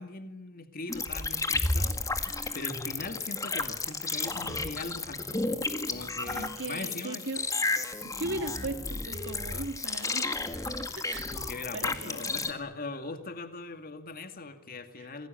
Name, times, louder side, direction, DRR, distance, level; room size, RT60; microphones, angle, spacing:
voice 1, 0.0-5.4 5.8-7.2 11.2-15.3, left 3 dB, 40° left, 8 dB, 2.3 m, -41 dB
sound 1, 0.9-12.5, left 3 dB, 15° left, 1.8 m, -32 dB
voice 2, 6.3-7.4 8.0-10.6 11.0-11.3 11.7-12.3, right 2 dB, 55° right, 8 dB, 2.3 m, -38 dB
27.5 x 20.0 x 9.1 m, 0.83 s
head